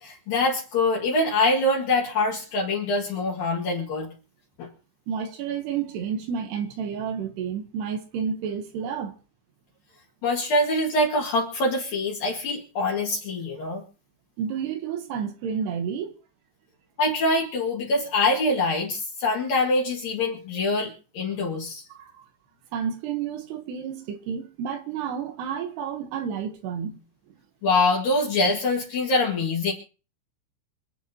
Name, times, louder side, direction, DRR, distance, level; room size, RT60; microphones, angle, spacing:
voice 1, 0.0-4.1 4.6-4.7 10.2-13.8 17.0-21.8 27.6-29.7, left 2 dB, 60° left, 3.4 m, -24 dB
voice 2, 5.1-9.1 14.4-16.2 21.9-22.3 22.7-27.0, right 7 dB, 75° right, 3.1 m, -30 dB
26.5 x 9.0 x 2.8 m
omnidirectional pair, 5.0 m